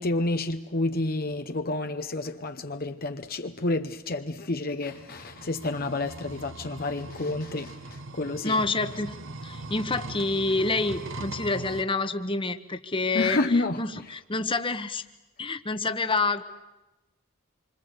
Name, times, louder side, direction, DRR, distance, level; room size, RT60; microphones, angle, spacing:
voice 1, 0.0-8.6 13.1-13.8, left 2 dB, 45° left, 0.9 m, -29 dB
sound 1, 4.9-11.8, right 2 dB, 60° right, 1.3 m, -40 dB
voice 2, 8.4-9.1 9.4-13.4 13.8-15.0 15.4-16.4, left 3 dB, 25° left, 1.2 m, -27 dB
27.5 x 25.0 x 8.2 m
head